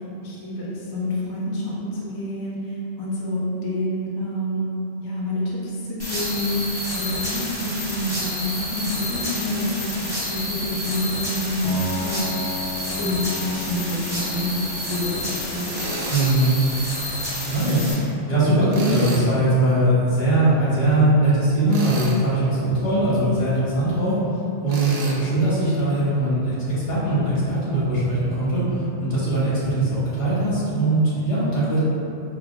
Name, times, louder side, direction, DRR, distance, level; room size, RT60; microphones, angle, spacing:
voice 1, 0.2-4.7 5.0-12.2 12.9-15.7, left 1 dB, 35° left, -6 dB, 0.3 m, -28 dB
sound 1, 6.0-17.9, left 1 dB, 25° right, 0.9 m, -30 dB
Piano, 11.6-21.2, left 2 dB, 85° left, 0.9 m, -36 dB
Tools, 15.7-16.2 18.7-19.3 21.7-22.2 24.7-25.2, right 1 dB, 70° right, 0.8 m, -31 dB
voice 2, 16.1-16.6 17.4-18.0 18.3-24.1 24.6-31.8, right 1 dB, 65° left, -10 dB, 1.4 m, -21 dB
5.0 x 2.3 x 2.3 m, 2.8 s
omnidirectional pair, 1.2 m